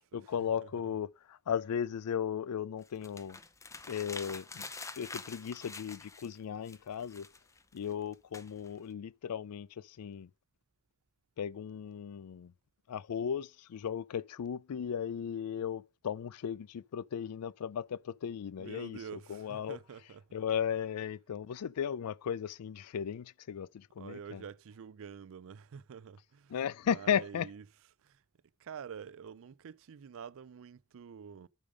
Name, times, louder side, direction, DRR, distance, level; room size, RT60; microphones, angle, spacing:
voice 1, 0.1-3.4 3.9-4.6 5.0-7.3 7.7-10.3 11.4-12.5 12.9-19.8 20.3-24.4 26.5-27.5, left 8 dB, 90° left, 0.4 m, -36 dB
sound 1, 2.8-6.4 6.7-8.9, left 4 dB, 15° left, 0.5 m, -46 dB
voice 2, 18.6-20.2 24.0-26.5 26.9-27.6 28.0-28.2 28.6-31.5, right 7 dB, 65° right, 0.4 m, -47 dB
8.8 x 5.0 x 5.1 m
head